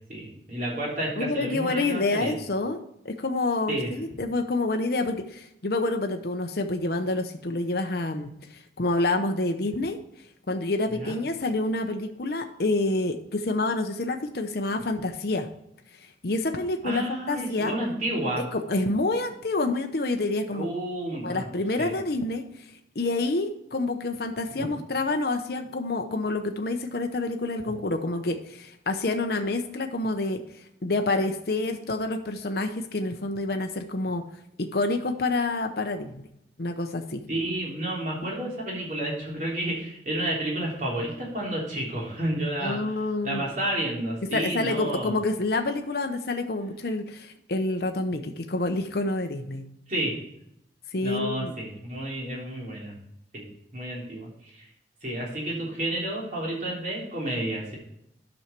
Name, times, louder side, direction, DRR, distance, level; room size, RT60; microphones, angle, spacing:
voice 1, 0.1-2.3 3.7-3.9 10.9-11.2 16.8-18.4 20.5-21.5 21.8-21.9 37.3-43.0 43.2-45.1 49.9-50.1 51.0-52.9 53.3-53.5 53.7-54.7 55.0-57.8, right 1 dB, 45° right, -4 dB, 3.5 m, -31 dB
voice 2, 1.2-2.8 3.0-10.0 10.5-15.5 16.2-17.7 18.5-20.7 21.2-22.7 22.9-34.2 34.6-36.2 36.6-37.2 42.6-43.4 44.3-49.6 50.9-51.5, left 2 dB, 55° left, 5 dB, 0.8 m, -28 dB
10.0 x 6.4 x 4.5 m, 0.78 s
head